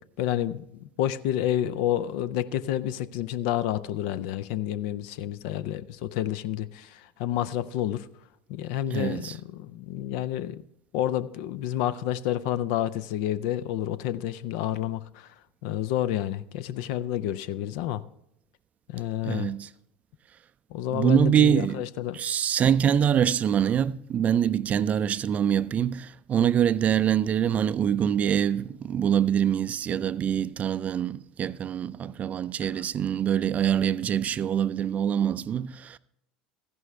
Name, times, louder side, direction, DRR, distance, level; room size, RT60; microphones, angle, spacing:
voice 1, 0.2-8.0 8.5-10.6 10.9-15.3 15.6-18.0 18.9-19.5 20.7-22.2, left 12 dB, 60° left, 0.5 m, -29 dB
voice 2, 8.9-9.4 19.2-19.7 20.9-21.8 22.1-36.0, right 9 dB, 35° right, 0.4 m, -24 dB
14.0 x 11.0 x 3.3 m
figure-of-eight pair, 70°, 4 cm